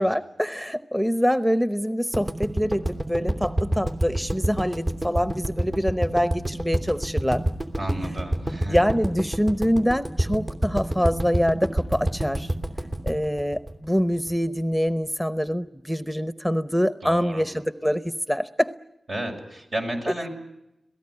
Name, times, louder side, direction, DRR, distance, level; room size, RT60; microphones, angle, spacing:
voice 1, 0.0-7.4 8.7-12.5 13.0-18.7, equal, 5° right, 11 dB, 0.9 m, -25 dB
sound 1, 2.1-14.3, right 1 dB, 45° right, 2.9 m, -27 dB
voice 2, 7.8-8.8 17.0-17.4 19.1-20.3, right 1 dB, 70° right, 2 dB, 6.7 m, -32 dB
27.0 x 18.0 x 9.7 m, 0.89 s
cardioid pair, 45°, 0 cm